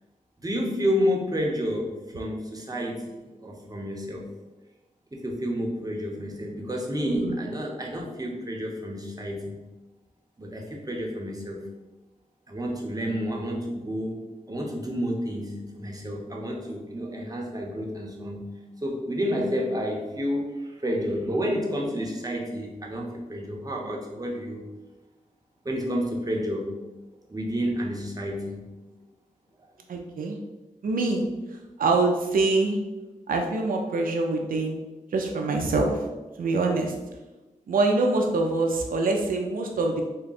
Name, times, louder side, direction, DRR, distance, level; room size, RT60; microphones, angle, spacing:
voice 1, 0.4-4.3 5.1-9.6 10.4-11.6 12.5-14.2 14.5-18.5 18.8-24.7 25.6-26.7 27.3-28.7, equal, 25° right, -1 dB, 0.9 m, -30 dB
voice 2, 7.0-7.4 29.9-30.4 30.8-31.2 31.8-32.8 33.3-34.8 35.1-36.0 36.4-36.9 37.7-40.0, right 3 dB, 90° right, 2 dB, 0.4 m, -24 dB
3.5 x 2.2 x 4.0 m, 1.1 s
cardioid pair, 55°, 14 cm